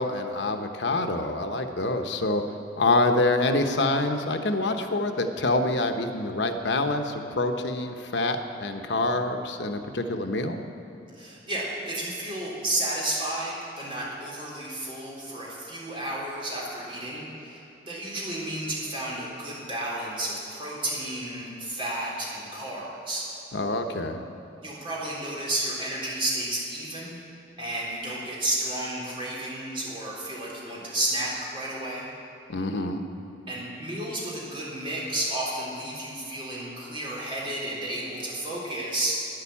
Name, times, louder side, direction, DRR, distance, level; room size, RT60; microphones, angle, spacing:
voice 1, 0.0-2.4 2.8-10.6 23.5-24.2 32.5-33.0, left 2 dB, 85° left, 6 dB, 1.0 m, -26 dB
voice 2, 11.2-23.3 24.6-27.2 27.6-32.1 33.5-39.2, right 1 dB, 30° right, -5 dB, 3.8 m, -32 dB
11.5 x 10.0 x 8.5 m, 3.0 s
head